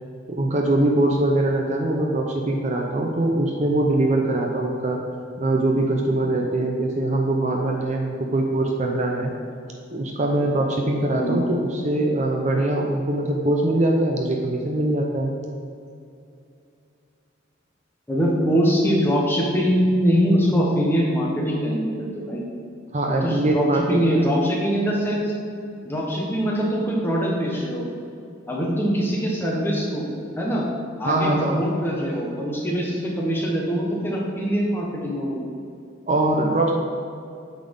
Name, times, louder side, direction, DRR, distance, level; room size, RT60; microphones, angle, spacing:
voice 1, 0.3-5.0 5.4-9.3 9.9-15.3 22.9-24.4 31.0-31.6 36.1-36.7, right 1 dB, 35° right, 1 dB, 0.6 m, -22 dB
voice 2, 18.1-22.4 23.2-25.3 25.8-27.9 28.5-30.1 30.3-30.7 31.0-35.4, equal, 10° left, -3 dB, 1.2 m, -23 dB
8.4 x 4.1 x 5.4 m, 2.5 s
head